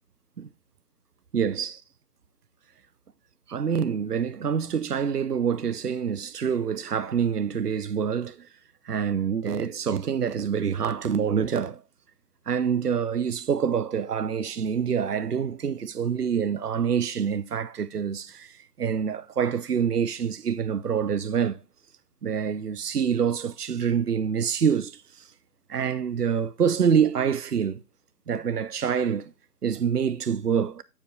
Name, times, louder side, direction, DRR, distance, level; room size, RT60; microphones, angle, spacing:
voice 1, 1.3-1.8 3.5-8.5 8.9-11.8 12.5-21.6 22.2-25.0 25.7-27.8 28.3-29.3 29.6-30.8, right 7 dB, 70° right, 0.7 m, -26 dB
7.3 x 7.3 x 3.7 m
figure-of-eight pair, 160°, 48 cm